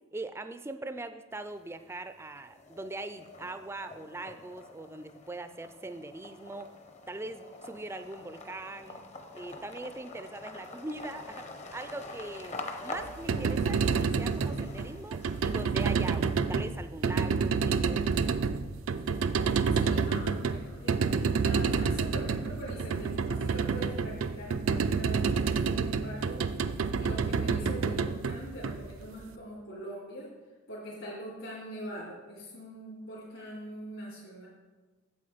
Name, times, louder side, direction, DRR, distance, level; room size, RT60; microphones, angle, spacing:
voice 1, 0.1-6.7 7.1-9.0 9.3-18.1, right 2 dB, 10° right, 10 dB, 0.4 m, -41 dB
sound 1, 1.3-2.0 2.4-15.9, left 2 dB, 35° left, 0.8 m, -46 dB
sound 2, 13.1-29.2, right 5 dB, 80° right, 0.4 m, -29 dB
voice 2, 19.7-30.3 30.7-34.5, equal, 65° left, -8 dB, 2.8 m, -43 dB
8.5 x 7.5 x 5.0 m, 1.3 s
head